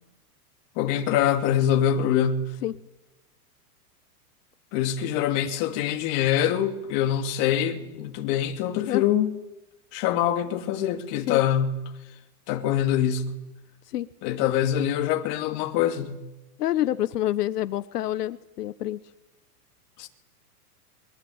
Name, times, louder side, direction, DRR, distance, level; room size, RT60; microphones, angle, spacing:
voice 1, 0.8-2.5 4.7-9.4 9.9-11.7 12.5-13.3 14.2-16.2 20.0-20.1, left 10 dB, 35° left, 2.6 m, -24 dB
voice 2, 16.6-19.0, left 13 dB, 80° left, 1.3 m, -27 dB
28.0 x 23.0 x 8.9 m
supercardioid pair, 170°, 47 cm